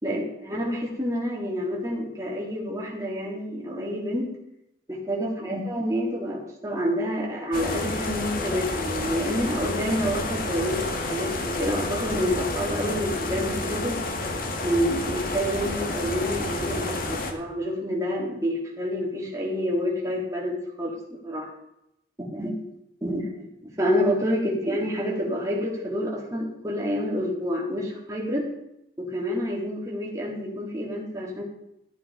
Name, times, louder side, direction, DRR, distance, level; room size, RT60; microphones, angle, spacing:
voice 1, 0.0-4.3 4.9-14.0 14.6-21.5 22.2-22.6 23.0-28.5 29.0-31.4, equal, 20° right, -3 dB, 3.9 m, -28 dB
sound 1, 7.5-17.3, left 2 dB, 55° left, 2.0 m, -30 dB
15.0 x 9.9 x 5.2 m, 0.83 s
head